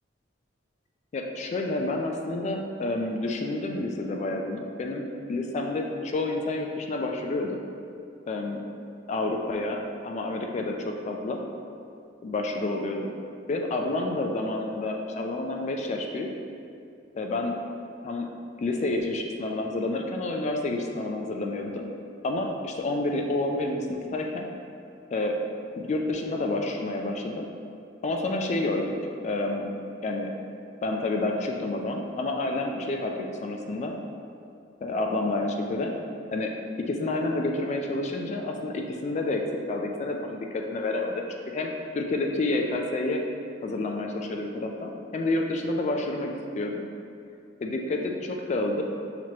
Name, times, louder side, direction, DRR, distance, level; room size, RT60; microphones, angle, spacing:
voice 1, 1.1-5.0 5.3-7.6 8.3-8.6 9.1-11.4 12.2-13.1 13.5-16.3 17.1-17.6 18.0-18.3 18.6-21.9 22.2-24.5 25.1-25.3 25.8-27.5 28.0-28.9 29.2-29.7 30.0-30.3 30.8-33.9 34.8-35.9 36.3-36.5 36.9-39.4 39.7-43.2 43.6-46.8 47.6-48.8, left 2 dB, 40° left, 2 dB, 0.3 m, -29 dB
5.8 x 3.0 x 2.8 m, 2.5 s
head